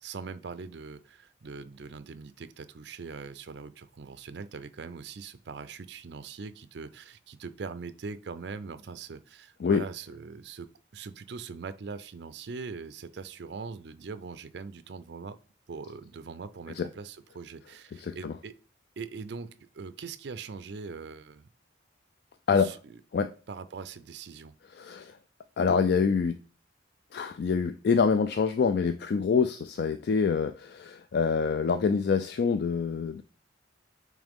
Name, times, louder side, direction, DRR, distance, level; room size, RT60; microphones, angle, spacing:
voice 1, 0.0-15.4 15.7-18.5 19.0-21.5 22.6-23.0 23.5-24.5, right 5 dB, 60° right, 0.4 m, -42 dB
voice 2, 18.0-18.3 22.5-22.8 23.1-23.3 24.7-25.2 25.6-26.4 27.1-33.2, left 5 dB, 55° left, 0.3 m, -26 dB
8.7 x 3.2 x 3.6 m
head